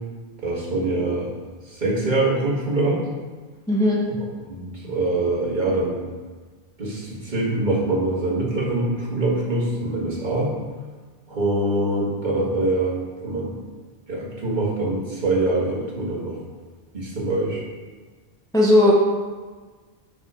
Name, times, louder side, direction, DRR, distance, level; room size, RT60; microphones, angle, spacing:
voice 1, 0.4-1.3 1.6-3.1 4.1-4.2 4.5-6.0 6.8-10.5 11.3-13.6 14.1-16.4 16.9-17.6, right 2 dB, 50° right, -5 dB, 1.7 m, -24 dB
voice 2, 3.7-4.0 18.5-18.9, left 1 dB, 5° left, -4 dB, 0.9 m, -16 dB
5.8 x 5.4 x 4.9 m, 1.4 s
omnidirectional pair, 1.1 m